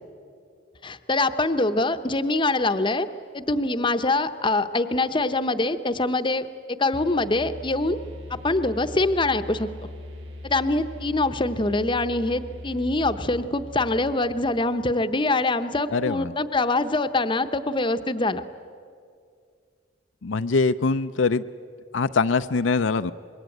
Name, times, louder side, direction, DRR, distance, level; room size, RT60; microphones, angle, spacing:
voice 1, 0.8-3.1 3.3-6.5 6.8-8.0 8.3-9.7 10.4-18.4, left 2 dB, 25° left, 10 dB, 0.8 m, -24 dB
sound 1, 6.9-14.6, left 1 dB, 75° right, 5.3 m, -40 dB
voice 2, 15.9-16.3 20.2-21.4 21.9-23.1, left 4 dB, 70° left, 10 dB, 0.5 m, -23 dB
25.5 x 22.0 x 9.1 m, 2.2 s
head